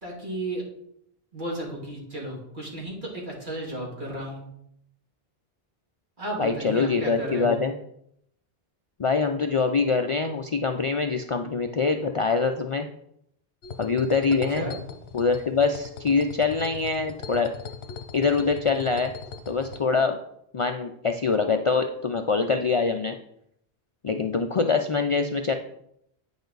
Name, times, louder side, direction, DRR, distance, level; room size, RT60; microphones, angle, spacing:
voice 1, 0.0-0.6 1.3-4.4 6.2-7.6 14.5-14.8, right 1 dB, 50° right, -4 dB, 2.8 m, -33 dB
voice 2, 6.4-7.7 9.0-12.9 13.8-14.7 15.1-17.5 18.1-19.1 19.5-20.2 20.5-23.2 24.0-25.5, left 4 dB, 45° left, 5 dB, 0.4 m, -24 dB
sound 1, 13.6-19.8, left 5 dB, 90° left, 1.0 m, -40 dB
9.0 x 6.9 x 4.0 m, 0.74 s
omnidirectional pair, 1.0 m